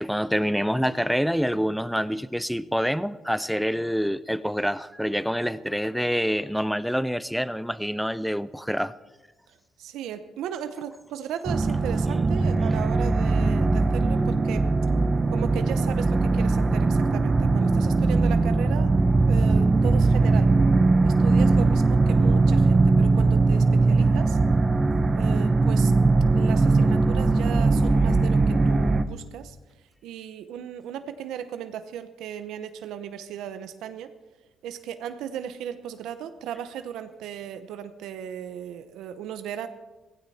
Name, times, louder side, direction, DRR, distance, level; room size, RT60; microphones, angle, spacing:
voice 1, 0.0-8.9, equal, ahead, 0.5 m, -26 dB
voice 2, 9.8-14.7 15.3-18.9 19.3-20.5 21.0-24.4 25.2-25.9 26.3-29.6 30.0-34.1 34.6-39.7, right 9 dB, 85° right, 0.8 m, -36 dB
sound 1, 11.5-29.0, right 3 dB, 30° right, 0.8 m, -20 dB
16.0 x 15.5 x 4.2 m
cardioid pair, 90°, 0 cm